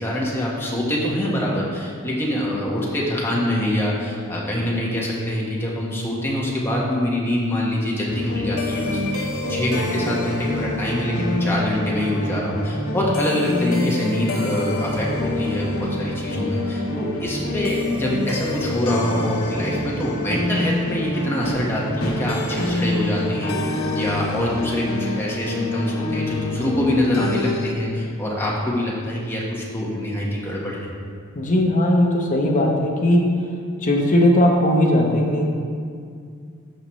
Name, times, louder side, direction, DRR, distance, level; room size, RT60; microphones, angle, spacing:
voice 1, 0.0-30.9, left 1 dB, 10° left, -5 dB, 1.4 m, -25 dB
sound 1, 8.1-27.7, left 2 dB, 75° left, 1.1 m, -26 dB
voice 2, 31.3-33.3 33.8-35.5, left 1 dB, 35° left, -1 dB, 1.0 m, -18 dB
13.5 x 5.3 x 3.2 m, 2.3 s
head